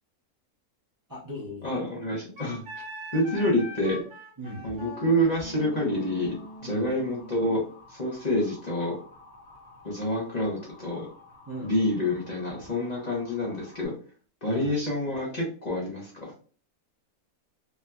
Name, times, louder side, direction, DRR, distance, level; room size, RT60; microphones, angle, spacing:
voice 1, 1.1-1.8 4.4-4.7 6.6-6.9 11.5-11.7 14.5-14.7, equal, 20° right, -5 dB, 0.5 m, -38 dB
voice 2, 1.6-2.8 3.1-4.0 4.6-6.3 6.6-7.6 7.9-9.0 9.8-11.1 11.6-13.9 14.4-16.3, left 1 dB, 35° left, -4 dB, 0.8 m, -27 dB
Wind instrument woodwind instrument, 2.4-7.7, right 1 dB, 55° right, 1.1 m, -43 dB
Motor vehicle (road) / Siren, 5.3-13.9, left 3 dB, 75° left, 1.5 m, -52 dB
3.3 x 2.6 x 2.2 m, 0.40 s
omnidirectional pair, 1.5 m